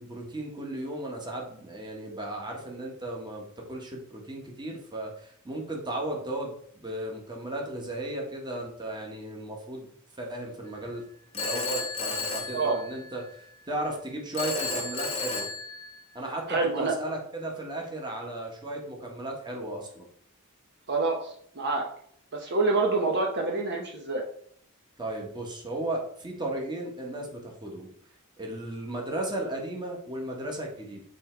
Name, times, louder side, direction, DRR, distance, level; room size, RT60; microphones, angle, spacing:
voice 1, 0.0-9.9 10.2-11.0 11.3-15.5 16.1-20.1 25.0-27.9 28.4-31.0, right 1 dB, 20° right, 0 dB, 1.4 m, -35 dB
Telephone, 11.3-13.3 14.3-16.3, left 3 dB, 25° left, 1.0 m, -33 dB
voice 2, 16.5-16.9 20.9-21.9 22.3-24.2, right 3 dB, 50° right, 1 dB, 0.9 m, -27 dB
7.2 x 3.5 x 4.5 m, 0.64 s
head